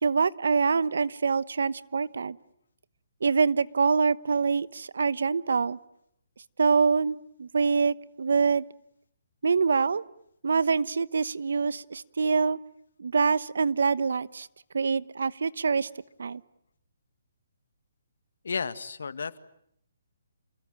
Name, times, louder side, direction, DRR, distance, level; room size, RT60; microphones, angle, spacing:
voice 1, 0.0-2.4 3.2-5.8 6.6-8.6 9.4-10.0 10.4-12.6 13.0-14.5 14.7-15.9 16.2-16.4, right 5 dB, 75° right, 18 dB, 1.0 m, -25 dB
voice 2, 18.4-19.4, left 5 dB, 75° left, 13 dB, 1.8 m, -32 dB
29.0 x 21.5 x 9.1 m, 0.73 s
hypercardioid pair, 160°, 0 cm